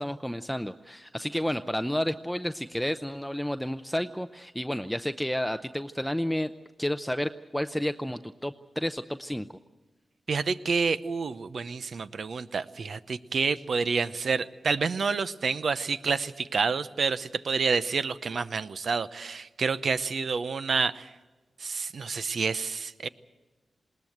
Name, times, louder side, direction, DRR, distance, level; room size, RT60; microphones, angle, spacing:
voice 1, 0.0-6.5 6.8-9.5, equal, 5° left, 9 dB, 0.6 m, -31 dB
voice 2, 10.3-21.1 21.6-23.1, right 5 dB, 70° right, 13 dB, 0.8 m, -28 dB
20.5 x 18.5 x 7.9 m, 1.2 s
cardioid pair, 75°, 0 cm